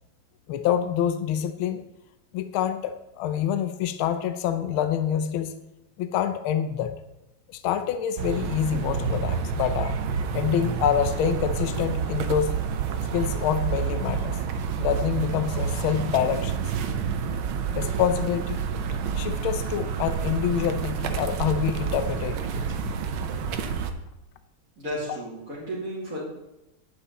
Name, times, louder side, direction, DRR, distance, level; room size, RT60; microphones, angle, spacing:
voice 1, 0.5-1.8 2.3-5.5 6.0-6.9 7.5-9.9 10.3-12.5 13.1-14.4 14.8-16.7 17.7-18.6 19.1-22.6, left 9 dB, 75° left, 10 dB, 1.4 m, -26 dB
sound 1, 8.2-23.9, right 7 dB, 70° right, 1.6 m, -29 dB
voice 2, 24.8-26.2, equal, 35° right, -10 dB, 3.4 m, -33 dB
10.0 x 10.0 x 4.1 m, 0.93 s
omnidirectional pair, 2.4 m